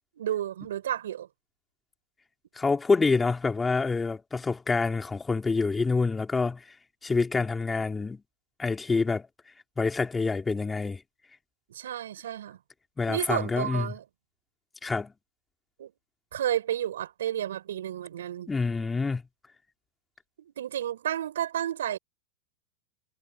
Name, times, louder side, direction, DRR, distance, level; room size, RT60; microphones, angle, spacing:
voice 1, 0.2-1.3 11.7-12.6 13.1-14.0 15.8-15.9 16.3-18.5 20.4-22.0, right 11 dB, 80° right, 7.9 m, -31 dB
voice 2, 2.5-6.7 7.0-8.2 8.6-9.3 9.8-11.0 13.0-13.9 14.8-15.1 18.5-19.2, left 4 dB, 15° left, 3.1 m, -27 dB
hypercardioid pair, 110°, 0 cm